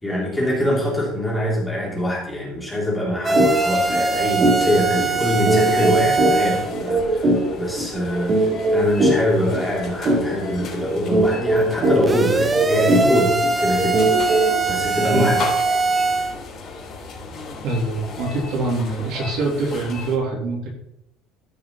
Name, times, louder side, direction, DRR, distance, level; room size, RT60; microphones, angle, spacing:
voice 1, 0.0-8.4 8.7-14.0 14.3-15.5, left 1 dB, 5° left, -5 dB, 3.0 m, -24 dB
sound 1, 3.2-6.7 12.0-16.3, right 4 dB, 15° right, 0.6 m, -21 dB
sound 2, 3.4-20.2, left 4 dB, 35° left, 3.4 m, -36 dB
sound 3, 3.4-3.5 3.9-4.0 4.4-14.6, right 1 dB, 30° right, 2.7 m, -21 dB
voice 2, 17.6-20.7, right 2 dB, 50° right, -2 dB, 3.4 m, -24 dB
14.5 x 5.7 x 4.1 m, 0.76 s
cardioid pair, 180°, 0 cm